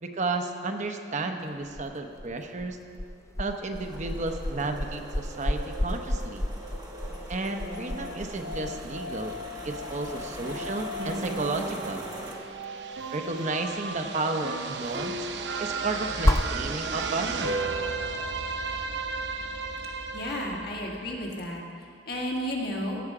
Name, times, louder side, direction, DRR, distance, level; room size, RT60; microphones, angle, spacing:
voice 1, 0.0-2.8 3.4-6.4 7.3-9.3 9.6-12.1 13.1-15.3 15.6-17.6, right 2 dB, 45° right, 5 dB, 0.8 m, -32 dB
sound 1, 1.4-17.3, left 1 dB, 15° left, 0.5 m, -33 dB
sound 2, 3.7-12.3, right 1 dB, 25° right, 1.3 m, -41 dB
sound 3, 4.5-21.6, right 3 dB, 80° right, 0.7 m, -35 dB
voice 2, 20.1-21.6 22.1-23.0, left 1 dB, 60° left, -1 dB, 1.9 m, -32 dB
16.5 x 7.2 x 4.9 m, 2.5 s
head